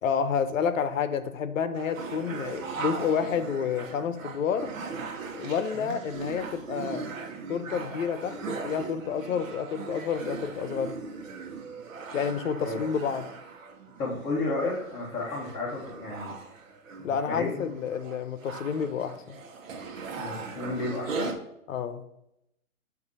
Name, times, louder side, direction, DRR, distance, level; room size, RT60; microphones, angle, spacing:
voice 1, 0.0-4.7 5.3-7.1 7.5-10.9 12.1-13.2 17.0-19.4 21.7-22.0, left 7 dB, 60° left, 11 dB, 0.8 m, -29 dB
sound 1, 1.7-21.3, right 4 dB, 60° right, 1.0 m, -39 dB
voice 2, 14.0-16.3 17.0-17.7 20.2-21.3, left 2 dB, 15° left, -8 dB, 0.8 m, -32 dB
7.8 x 2.7 x 5.3 m, 0.82 s
hypercardioid pair, 145°, 44 cm